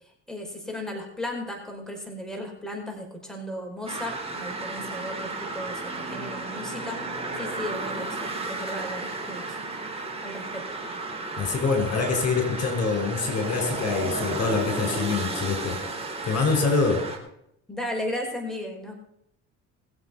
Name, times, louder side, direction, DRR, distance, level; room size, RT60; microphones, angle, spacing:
voice 1, 0.3-7.0 7.4-9.6 10.2-10.6 16.3-16.4 17.7-18.9, left 1 dB, ahead, 1 dB, 5.2 m, -35 dB
sound 1, 3.9-17.2, right 3 dB, 20° right, 4.3 m, -33 dB
voice 2, 11.4-15.8 16.2-17.0, left 4 dB, 50° left, 4 dB, 5.0 m, -25 dB
21.5 x 8.0 x 5.7 m, 0.76 s
supercardioid pair, 75°, 33 cm